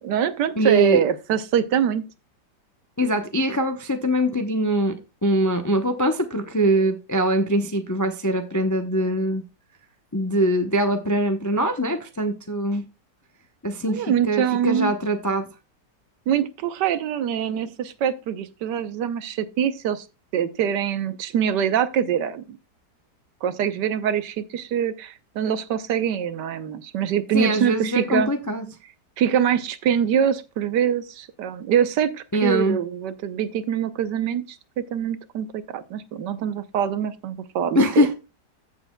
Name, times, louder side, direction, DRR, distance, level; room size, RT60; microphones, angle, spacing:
voice 1, 0.0-2.0 13.9-14.9 16.3-20.0 20.3-22.5 23.4-28.3 29.2-34.4 34.9-38.1, right 9 dB, 85° right, 1.4 m, -24 dB
voice 2, 0.6-1.0 3.0-4.9 5.2-9.4 10.1-12.8 13.6-15.5 27.3-28.6 32.3-32.8 37.7-38.1, right 1 dB, 25° left, 0.4 m, -22 dB
15.0 x 6.7 x 2.2 m
omnidirectional pair, 1.8 m